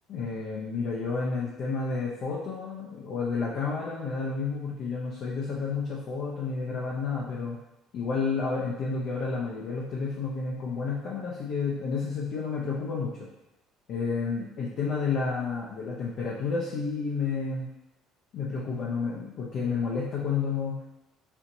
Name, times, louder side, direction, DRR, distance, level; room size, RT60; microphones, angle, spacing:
voice 1, 0.1-7.6 7.9-13.3 13.9-17.7 18.3-20.8, left 4 dB, 45° left, -4 dB, 0.7 m, -30 dB
4.4 x 4.1 x 2.6 m, 0.92 s
cardioid pair, 160°, 0 cm